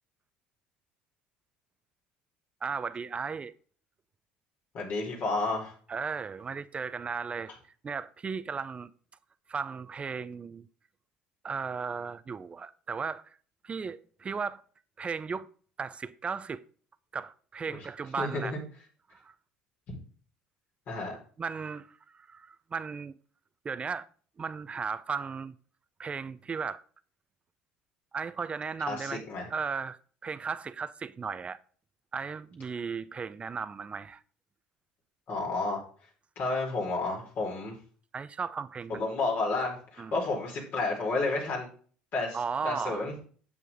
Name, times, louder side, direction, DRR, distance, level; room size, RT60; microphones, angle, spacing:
voice 1, 2.6-3.5 5.9-7.5 7.8-8.9 9.5-10.7 11.4-13.2 13.6-14.6 15.0-15.5 15.8-16.6 17.1-18.6 19.2-19.3 21.4-23.1 23.6-24.1 24.4-25.5 26.0-26.8 28.1-29.2 29.5-30.0 30.2-31.6 32.1-34.2 38.1-39.0 40.0-40.1 42.3-43.0, right 5 dB, 30° right, 0.6 m, -35 dB
voice 2, 4.7-5.7 17.7-17.8 18.2-18.6 19.9-20.0 20.9-21.2 28.9-29.5 35.3-35.8 36.4-37.7 38.9-41.7 42.1-43.1, left 3 dB, 55° left, 4.6 m, -31 dB
9.3 x 8.0 x 3.6 m
hypercardioid pair, 75°, 4 cm